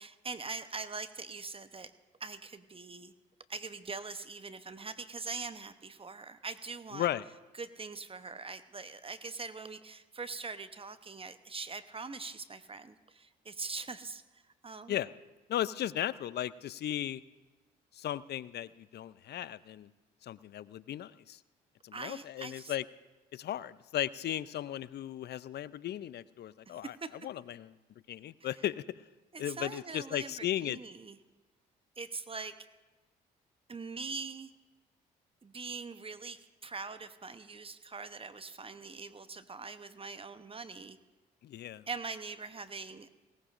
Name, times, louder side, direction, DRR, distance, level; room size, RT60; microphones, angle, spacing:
voice 1, 0.0-1.9 2.2-3.1 3.5-7.0 7.5-15.0 21.9-22.8 26.7-27.2 28.4-28.6 29.3-31.2 32.0-32.7 33.7-34.5 35.4-41.0 41.9-43.1, right 4 dB, 25° right, 12 dB, 0.8 m, -43 dB
voice 2, 6.9-7.2 14.9-15.1 15.5-17.2 17.9-19.9 20.2-21.4 21.8-22.8 23.3-26.9 27.2-27.7 28.1-28.8 29.4-30.8 41.4-41.9, left 12 dB, 55° left, 18 dB, 0.5 m, -36 dB
20.0 x 18.0 x 2.5 m, 1.2 s
hypercardioid pair, 50°, 20 cm